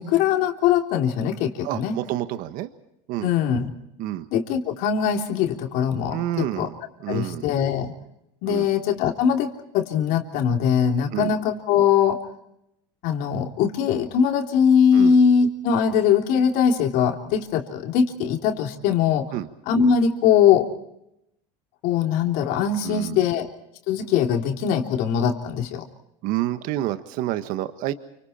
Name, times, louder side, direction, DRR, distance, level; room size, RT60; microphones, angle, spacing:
voice 1, 0.0-2.0 3.2-3.7 4.3-6.7 7.1-7.9 8.4-12.2 13.0-19.3 19.7-20.7 21.8-23.5 23.9-25.8, left 7 dB, 65° left, 3 dB, 3.3 m, -21 dB
voice 2, 1.6-2.7 3.1-3.3 4.0-4.2 6.1-6.7 7.0-7.4 8.4-8.7 11.1-11.3 14.9-15.2 19.3-19.5 22.8-23.3 26.2-27.9, right 14 dB, 60° right, 10 dB, 1.5 m, -28 dB
29.5 x 25.5 x 4.4 m, 0.81 s
supercardioid pair, 120°, 16 cm